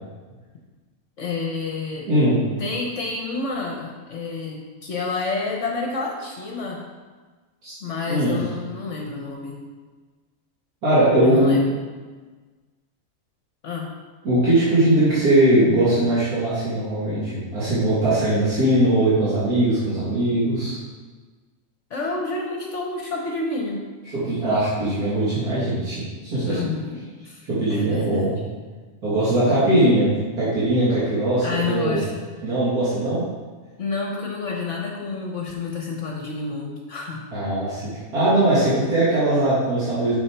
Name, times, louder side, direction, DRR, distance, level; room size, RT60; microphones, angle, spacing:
voice 1, 1.2-2.1 2.6-6.9 7.8-9.6 11.2-11.8 13.6-13.9 21.9-23.8 26.5-28.4 31.4-32.3 33.8-37.2, left 3 dB, 55° left, 0 dB, 1.2 m, -29 dB
voice 2, 2.1-2.4 7.6-7.7 8.1-8.4 10.8-11.6 14.2-20.8 24.2-26.6 27.5-28.4 29.0-32.0 32.4-33.3 37.3-37.8 38.1-40.1, right 1 dB, 80° right, -10 dB, 2.5 m, -20 dB
7.0 x 6.5 x 4.6 m, 1.4 s
omnidirectional pair, 1.6 m